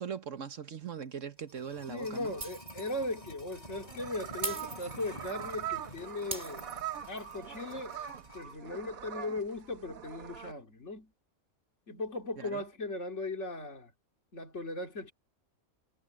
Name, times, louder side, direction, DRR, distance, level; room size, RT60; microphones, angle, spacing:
voice 1, 0.0-2.3 12.4-12.6, right 7 dB, 60° right, 1.5 m, -40 dB
sound 1, 1.2-8.6 8.9-9.0, equal, 30° left, 5.0 m, -50 dB
voice 2, 1.9-6.7 7.0-8.0 8.3-11.1 11.9-13.9 14.3-15.1, left 2 dB, 55° left, 3.6 m, -38 dB
Shatter, 2.4-3.0 3.3-3.4 4.4-5.4 6.3-7.3, right 1 dB, 35° right, 3.9 m, -40 dB
sound 2, 3.6-10.5, right 11 dB, 75° right, 1.5 m, -42 dB
omnidirectional pair, 1.5 m